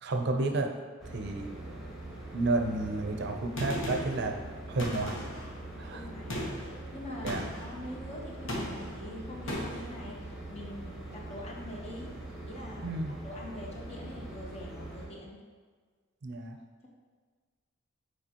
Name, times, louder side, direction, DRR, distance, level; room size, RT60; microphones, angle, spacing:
voice 1, 0.0-0.7 1.1-1.5 2.3-4.4 4.7-5.2 5.8-6.0 7.2-7.4 12.8-13.1 16.2-16.6, right 2 dB, 55° right, 4 dB, 0.5 m, -31 dB
sound 1, 1.0-15.1, right 1 dB, ahead, 1.4 m, -43 dB
Gunshot gunfire, 3.6-4.2 4.8-5.5 6.3-6.7 7.3-7.7 8.5-9.0 9.5-9.9, equal, 65° left, 1.1 m, -36 dB
voice 2, 5.9-12.1 12.5-15.4, left 1 dB, 30° left, -2 dB, 0.9 m, -44 dB
6.8 x 4.7 x 2.9 m, 1.5 s
head